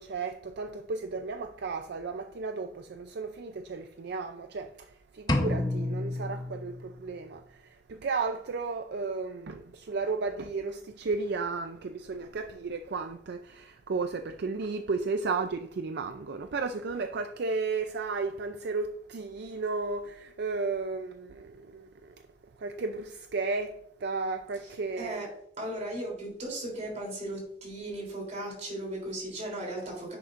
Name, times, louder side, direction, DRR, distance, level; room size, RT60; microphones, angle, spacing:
voice 1, 0.0-22.1 22.6-25.3, right 4 dB, 65° right, 0.5 m, -34 dB
sound 1, 5.3-7.2, left 2 dB, 25° left, 0.8 m, -30 dB
voice 2, 25.0-25.3 25.6-30.2, right 1 dB, 40° right, 3.4 m, -36 dB
10.5 x 6.6 x 2.5 m
head